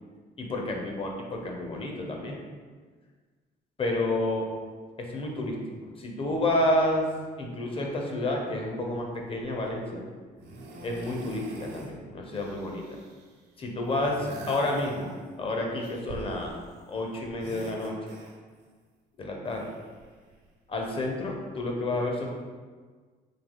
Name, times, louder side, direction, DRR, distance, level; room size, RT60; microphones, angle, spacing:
voice 1, 0.4-2.4 3.8-4.5 5.0-5.6 6.0-7.1 7.4-10.0 10.8-12.8 13.6-16.6 16.9-17.9 19.2-19.7 20.7-22.3, left 1 dB, 35° left, 0 dB, 0.8 m, -30 dB
sound 1, 10.4-11.9 12.2-13.4 13.8-15.4 15.8-16.9 17.2-18.7 19.4-20.5 21.4-21.5, right 2 dB, 75° right, 0.9 m, -45 dB
3.9 x 2.7 x 3.7 m, 1.5 s
cardioid pair, 110°, 17 cm